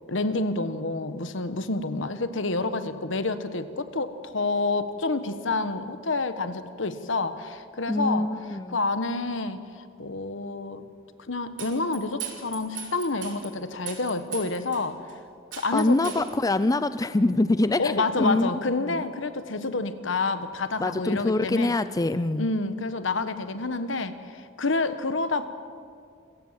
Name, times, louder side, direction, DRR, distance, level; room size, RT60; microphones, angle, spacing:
voice 1, 0.1-8.3 8.7-10.9 11.3-15.0 15.5-16.1 17.8-21.7 22.4-25.5, left 3 dB, 70° left, 11 dB, 1.3 m, -28 dB
voice 2, 7.9-8.8 15.7-18.5 18.8-19.0 20.8-22.5, left 2 dB, 20° left, 13 dB, 0.4 m, -24 dB
sound 1, 11.6-13.5 13.9-14.8 15.1-15.2 15.5-16.3, right 8 dB, 70° right, 3.8 m, -37 dB
27.5 x 15.5 x 7.5 m, 2.3 s
head